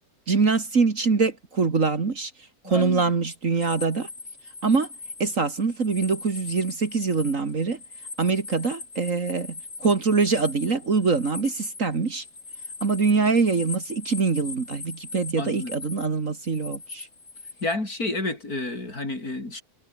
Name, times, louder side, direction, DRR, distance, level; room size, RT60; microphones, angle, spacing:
voice 1, 0.3-2.3 2.6-4.1 4.6-4.9 5.2-7.8 8.2-12.2 12.8-17.1, right 4 dB, 55° right, 2.5 m, -24 dB
voice 2, 2.6-3.0 15.4-15.7 17.6-19.6, left 2 dB, 70° left, 6.7 m, -30 dB
sound 1, 3.6-17.7, left 3 dB, 90° left, 4.6 m, -40 dB
omnidirectional pair, 1.6 m